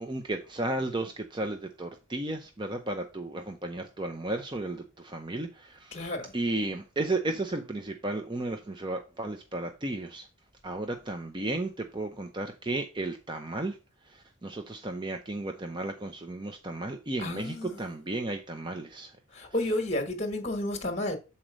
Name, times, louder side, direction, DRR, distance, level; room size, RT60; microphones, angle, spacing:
voice 1, 0.0-10.3 10.6-13.8 14.1-19.1 19.6-19.7, right 2 dB, 20° right, 0.6 m, -34 dB
voice 2, 5.9-6.3 17.2-17.7 19.4-21.2, left 1 dB, 30° left, 1.3 m, -31 dB
7.6 x 4.2 x 5.0 m
head